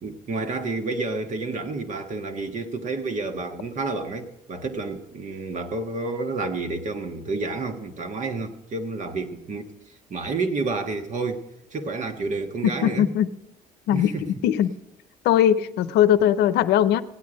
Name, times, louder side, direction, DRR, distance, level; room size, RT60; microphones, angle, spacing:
voice 1, 0.0-9.7 10.1-13.1 13.9-14.2, right 3 dB, 45° right, 6 dB, 1.5 m, -30 dB
voice 2, 12.8-13.3 13.9-14.7 15.2-17.0, left 10 dB, 80° left, 13 dB, 0.7 m, -20 dB
16.5 x 9.4 x 5.1 m, 0.86 s
cardioid pair, 110°, 17 cm